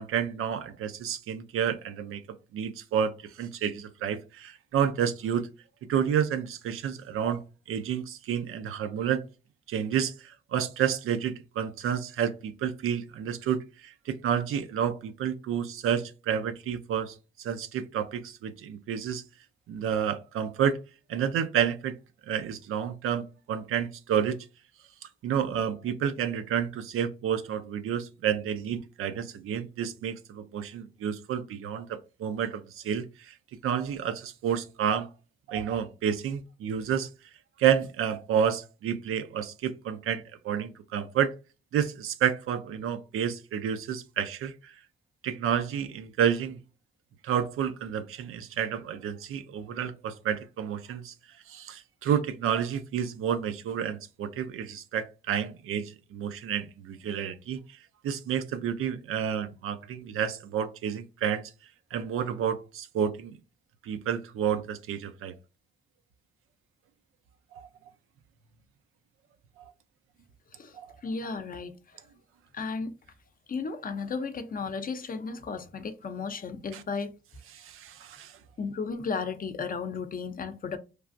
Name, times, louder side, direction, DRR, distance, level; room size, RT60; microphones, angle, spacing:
voice 1, 0.0-5.5 5.9-7.4 7.7-9.3 9.7-19.2 19.7-20.8 21.1-22.0 22.3-24.5 25.2-33.4 33.6-35.1 35.5-37.1 37.6-41.3 41.7-44.7 45.2-46.6 47.2-51.1 51.5-57.8 58.0-61.5 61.9-63.4 63.8-65.3 67.5-67.7 69.6-69.7 70.7-70.9 76.7-76.8 77.5-78.4, right 8 dB, 85° right, 0.4 m, -30 dB
voice 2, 71.0-71.7 72.5-72.9 73.5-77.1 78.6-80.8, left 5 dB, 40° left, 0.5 m, -34 dB
3.2 x 2.4 x 2.5 m
cardioid pair, 65°, 21 cm